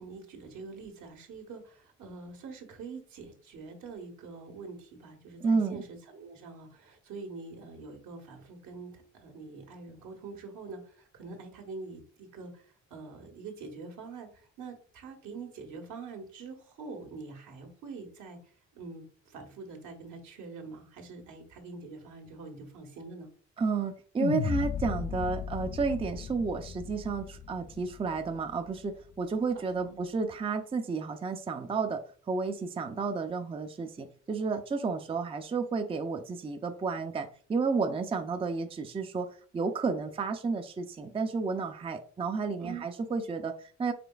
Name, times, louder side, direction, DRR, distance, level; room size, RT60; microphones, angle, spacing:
voice 1, 0.0-23.3 29.5-30.0 42.6-42.8, right 4 dB, 75° right, 3 dB, 1.4 m, -45 dB
voice 2, 5.4-5.8 23.6-32.0 32.3-39.3 39.5-43.9, right 4 dB, 20° right, 7 dB, 0.4 m, -31 dB
sound 1, 24.2-28.5, left 7 dB, 45° left, 0.4 m, -35 dB
5.0 x 3.7 x 2.3 m, 0.43 s
cardioid pair, 90°, 30 cm